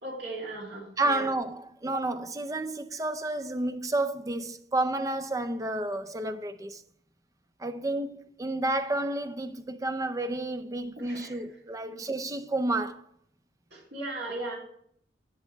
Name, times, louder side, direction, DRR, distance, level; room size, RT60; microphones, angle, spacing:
voice 1, 0.0-1.3 11.0-11.4 11.9-12.0 13.7-14.6, right 2 dB, 75° right, 2.7 m, -37 dB
voice 2, 1.0-6.8 7.6-13.0, right 2 dB, 20° right, 0.5 m, -30 dB
10.5 x 7.4 x 3.1 m
head